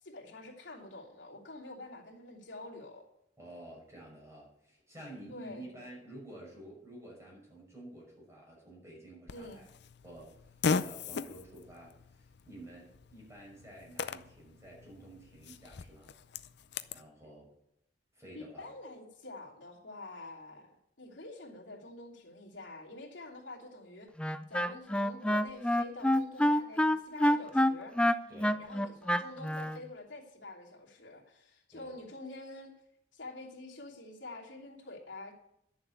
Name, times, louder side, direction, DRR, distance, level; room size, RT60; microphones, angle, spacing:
voice 1, 0.0-3.0 5.3-5.9 9.3-9.6 18.3-24.1 24.5-27.9 28.6-32.7 33.1-35.3, left 2 dB, 85° left, -3 dB, 3.0 m, -47 dB
voice 2, 3.4-9.7 10.0-16.1 16.9-17.5 18.1-18.7 28.3-28.6 31.7-31.9, right 1 dB, 15° right, -3 dB, 5.9 m, -51 dB
Fart, 9.3-17.0, left 5 dB, 65° left, 0.5 m, -39 dB
Wind instrument woodwind instrument, 24.2-29.8, left 1 dB, 5° left, 0.4 m, -27 dB
11.0 x 7.2 x 8.4 m, 0.76 s
head